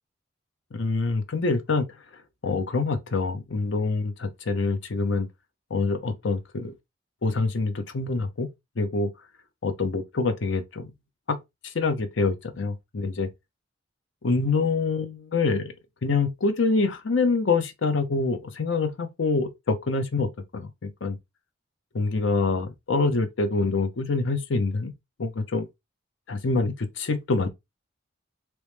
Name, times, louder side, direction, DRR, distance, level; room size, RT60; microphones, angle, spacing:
voice 1, 0.7-1.8 2.4-5.3 5.7-6.7 7.2-8.5 8.8-9.1 9.6-10.9 11.3-11.4 11.6-13.3 14.2-15.7 16.0-21.2 21.9-24.9 25.2-25.7 26.3-27.5, left 3 dB, 65° left, 0.6 m, -26 dB
3.0 x 3.0 x 3.2 m
head